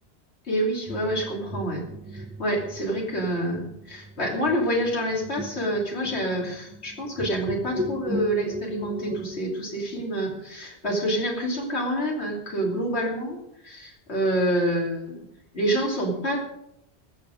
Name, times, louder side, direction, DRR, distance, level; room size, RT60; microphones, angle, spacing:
voice 1, 0.5-1.8 2.1-13.4 13.6-15.2 15.5-16.4, right 1 dB, 75° left, -2 dB, 3.3 m, -27 dB
sound 1, 0.9-9.4, equal, 10° right, 1.1 m, -36 dB
21.0 x 7.8 x 5.2 m, 0.80 s
omnidirectional pair, 1.1 m